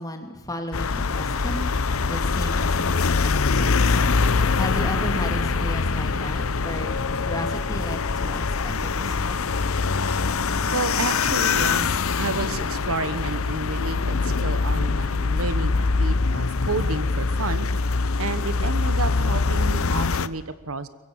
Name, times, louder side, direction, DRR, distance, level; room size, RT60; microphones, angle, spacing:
voice 1, 0.0-4.0 4.6-9.3, left 1 dB, 15° left, 5 dB, 2.6 m, -34 dB
sound 1, 0.7-20.3, left 4 dB, 65° left, 0.8 m, -23 dB
voice 2, 10.7-11.9 12.2-17.7 18.2-20.9, right 3 dB, 65° right, 13 dB, 1.2 m, -30 dB
23.5 x 22.5 x 7.4 m, 1.1 s
head